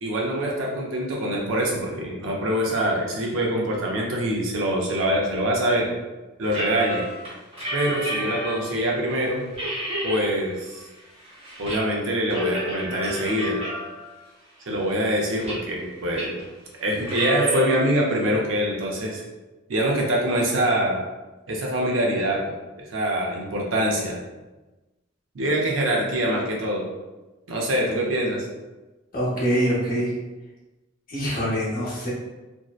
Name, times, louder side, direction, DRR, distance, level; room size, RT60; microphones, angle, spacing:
voice 1, 0.0-5.9 6.4-7.0 7.7-9.4 10.0-10.8 11.6-13.6 14.7-16.4 16.8-19.2 19.7-21.0 21.5-22.4 22.9-24.2 25.3-26.9 27.5-28.5, right 1 dB, 65° right, -2 dB, 0.5 m, -24 dB
sound 1, 6.5-8.7 9.1-9.2 9.5-10.3 10.7-11.8 12.1-14.1 14.7-15.8 16.1-16.4 17.0-17.7, right 1 dB, 30° right, 0.7 m, -31 dB
voice 2, 29.1-30.1 31.1-32.1, equal, 45° left, -7 dB, 0.9 m, -24 dB
2.6 x 2.1 x 2.3 m, 1.1 s
head